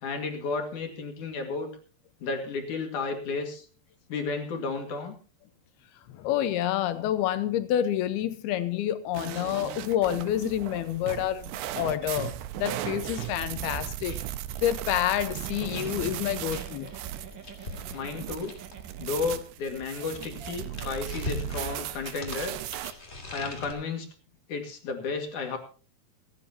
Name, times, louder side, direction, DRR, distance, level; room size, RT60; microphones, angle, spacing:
voice 1, 0.0-1.7 2.2-3.6 4.1-5.2 17.9-18.5 19.0-22.5 23.3-24.1 24.5-25.6, left 4 dB, 55° left, 4 dB, 3.1 m, -32 dB
voice 2, 6.1-14.2 14.6-16.9, left 11 dB, 75° left, 11 dB, 2.9 m, -28 dB
sound 1, 9.2-22.9, right 12 dB, 90° right, 2.9 m, -37 dB
sound 2, 13.2-18.9 19.8-23.7, left 2 dB, 20° left, 2.3 m, -42 dB
Giggle, 15.4-19.7 20.0-20.1 20.4-20.6, right 8 dB, 65° right, 1.1 m, -46 dB
28.0 x 10.0 x 2.9 m, 0.37 s
omnidirectional pair, 4.7 m